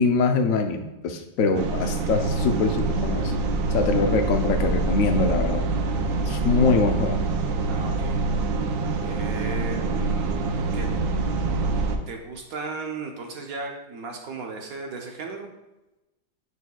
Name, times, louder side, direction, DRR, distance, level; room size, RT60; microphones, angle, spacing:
voice 1, 0.0-3.3 3.7-5.7 6.3-7.2, left 4 dB, 65° left, 5 dB, 0.8 m, -23 dB
sound 1, 1.5-12.0, right 3 dB, 90° right, 1.4 m, -25 dB
voice 2, 7.7-8.2 9.0-10.4 10.7-10.9 12.1-15.5, right 4 dB, 65° right, 2 dB, 1.0 m, -36 dB
9.5 x 4.6 x 2.3 m, 1.0 s
omnidirectional pair, 2.0 m